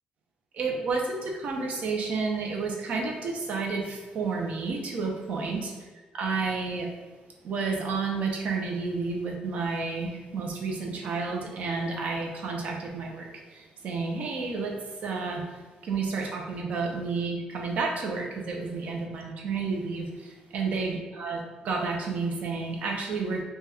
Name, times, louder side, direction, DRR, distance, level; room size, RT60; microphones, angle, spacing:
voice 1, 0.5-5.8 6.1-6.9 7.4-14.7 15.0-15.5 15.8-23.4, right 4 dB, 55° right, 1 dB, 0.7 m, -31 dB
4.1 x 2.3 x 3.4 m, 1.3 s
cardioid pair, 150°, 3 cm